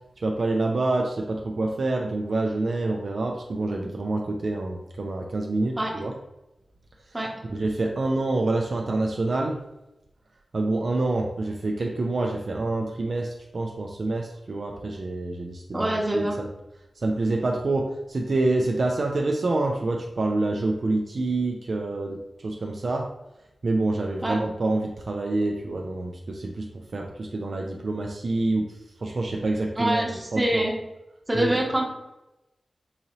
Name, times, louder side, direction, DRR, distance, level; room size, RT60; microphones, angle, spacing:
voice 1, 0.2-6.1 7.5-9.6 10.5-16.5 17.0-23.1 23.6-30.1 30.3-30.6 31.3-31.6, right 2 dB, 60° right, 2 dB, 0.3 m, -27 dB
voice 2, 15.7-16.4 24.2-24.4 29.8-30.7 31.3-31.9, right 1 dB, 15° right, -2 dB, 0.9 m, -25 dB
3.8 x 2.7 x 3.0 m, 0.95 s
wide cardioid pair, 95°, 0 cm